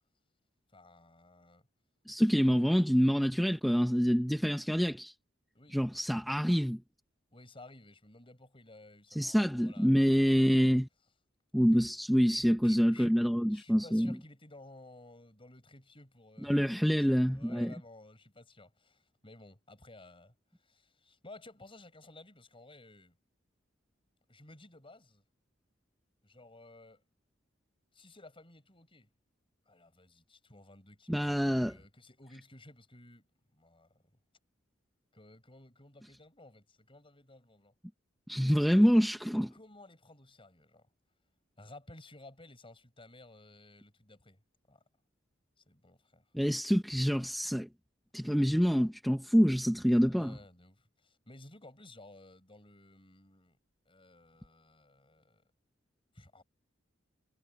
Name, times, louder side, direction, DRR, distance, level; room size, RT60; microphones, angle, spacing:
voice 1, 0.7-1.6 2.4-2.7 5.5-5.8 7.3-10.8 12.3-13.2 13.5-23.2 24.3-25.2 26.2-27.0 27.9-29.1 29.7-34.0 35.1-37.7 39.5-40.9 41.6-44.4 44.7-44.8 45.6-46.2 50.1-53.6 53.9-55.4 56.1-56.4, left 2 dB, 30° left, 7.4 m, -55 dB
voice 2, 2.1-5.1 5.7-6.8 9.1-10.9 11.5-14.1 16.4-17.7 31.1-31.7 38.3-39.5 46.3-47.7 48.1-50.4, equal, ahead, 0.8 m, -26 dB
head